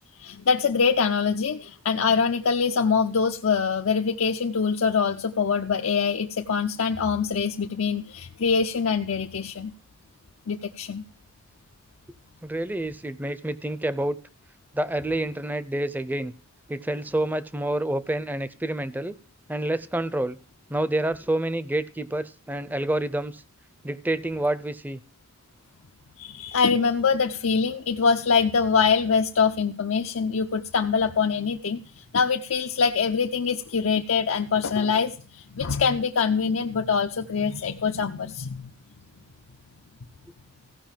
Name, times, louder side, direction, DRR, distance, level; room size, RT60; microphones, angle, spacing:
voice 1, 0.2-9.7 10.5-11.0 26.2-38.7, left 5 dB, 90° left, 4 dB, 0.6 m, -24 dB
voice 2, 12.4-14.2 14.7-16.3 16.7-19.1 19.5-20.4 20.7-23.4 23.8-25.0, right 1 dB, 10° right, 15 dB, 0.5 m, -28 dB
15.5 x 5.6 x 7.3 m, 0.40 s
head